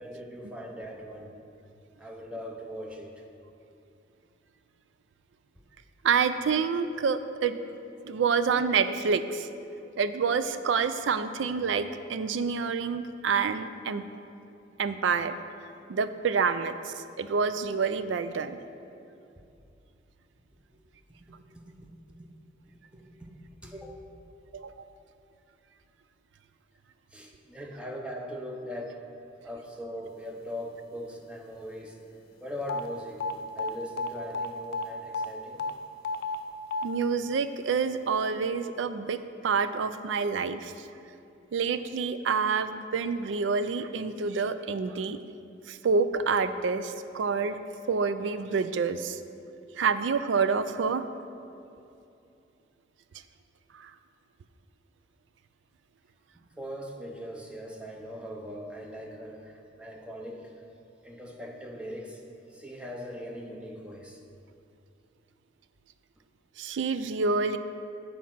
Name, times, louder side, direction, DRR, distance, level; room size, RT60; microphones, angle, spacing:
voice 1, 0.0-1.4 2.0-3.2 21.3-21.9 22.2-22.3 22.9-23.3 23.6-24.1 27.1-29.0 29.4-32.0 32.4-33.2 33.5-35.7 56.6-60.5 61.0-62.2 62.5-64.2, equal, 5° right, 0 dB, 0.7 m, -40 dB
voice 2, 6.0-7.6 8.0-9.6 10.0-14.0 14.8-15.4 15.9-18.6 24.5-24.9 36.8-39.2 39.4-40.9 41.5-45.2 45.7-47.6 47.9-49.2 49.8-51.1 53.7-53.9 66.6-67.6, right 5 dB, 80° right, 11 dB, 0.4 m, -28 dB
sound 1, 32.7-32.8 33.2-33.3 33.6-34.1 34.3-34.5 34.7-34.8 35.1-35.3 35.6-35.7 36.0-36.4 36.7-36.8, left 3 dB, 55° left, 0.4 m, -30 dB
8.4 x 4.2 x 5.7 m, 2.6 s
head